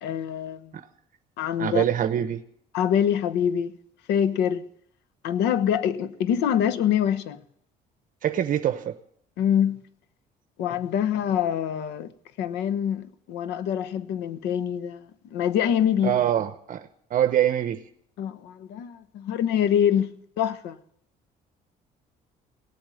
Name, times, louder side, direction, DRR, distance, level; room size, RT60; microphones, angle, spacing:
voice 1, 0.0-0.7 1.4-1.8 2.7-3.8 4.1-4.6 5.2-7.4 9.4-9.8 10.6-12.1 12.4-15.0 15.3-16.2 18.2-20.1 20.4-20.8, left 9 dB, 90° left, 1.1 m, -25 dB
voice 2, 1.6-2.4 8.2-8.9 16.0-17.8, right 10 dB, 55° right, 0.9 m, -24 dB
18.0 x 8.6 x 9.2 m
cardioid pair, 110°, 17 cm